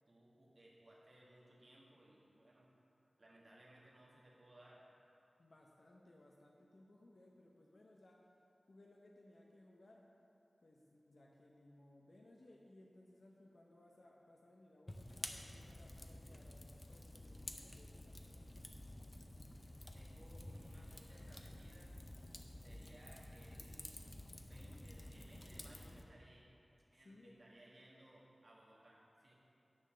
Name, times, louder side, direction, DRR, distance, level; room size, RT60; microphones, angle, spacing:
voice 1, 0.1-2.7 3.2-4.8 19.9-21.9 22.6-24.1 24.4-26.4 26.9-29.3, right 1 dB, 50° right, -5 dB, 1.6 m, -63 dB
voice 2, 5.4-8.2 8.7-10.1 10.6-18.6 26.9-27.4, left 1 dB, 60° left, -2 dB, 0.8 m, -64 dB
Fire, 14.9-26.0, left 1 dB, 30° left, 0.6 m, -51 dB
9.6 x 4.1 x 6.5 m, 2.8 s
wide cardioid pair, 85°, 0 cm